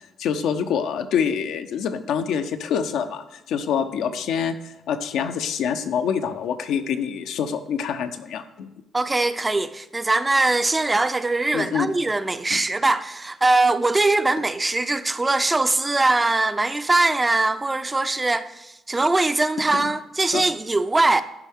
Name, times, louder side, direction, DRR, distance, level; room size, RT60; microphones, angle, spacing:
voice 1, 0.2-8.7 11.5-11.9 12.5-12.6 19.7-19.9 20.3-20.4, left 7 dB, 80° left, 0.5 m, -26 dB
voice 2, 8.9-21.2, right 2 dB, 20° right, 0.4 m, -21 dB
11.5 x 4.6 x 3.5 m
cardioid pair, 90°, 0 cm